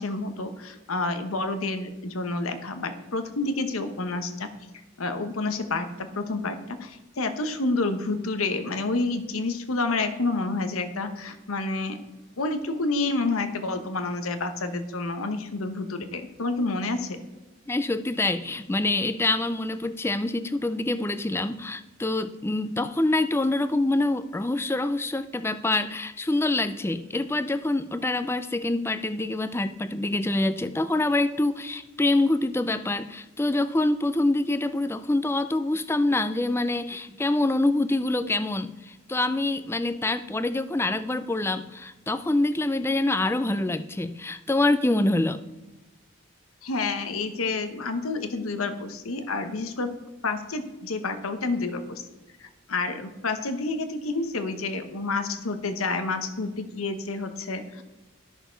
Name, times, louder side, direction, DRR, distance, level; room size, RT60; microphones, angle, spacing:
voice 1, 0.0-4.5 5.0-5.9 6.1-12.0 12.4-17.2 46.6-49.9 50.2-52.0 52.4-57.8, left 3 dB, 90° left, 8 dB, 1.0 m, -29 dB
voice 2, 17.7-45.4, left 2 dB, 10° left, 12 dB, 0.4 m, -25 dB
12.5 x 6.5 x 4.6 m, 1.1 s
head